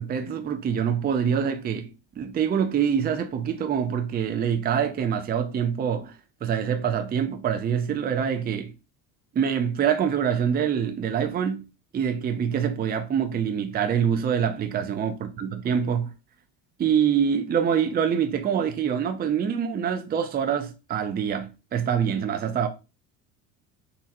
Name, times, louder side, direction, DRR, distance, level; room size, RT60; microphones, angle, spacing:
voice 1, 0.0-1.9 2.2-6.1 6.4-8.7 9.3-11.6 11.9-16.1 16.8-22.7, right 8 dB, 25° right, 0.5 m, -25 dB
3.8 x 2.8 x 2.6 m
supercardioid pair, 90°, 40 cm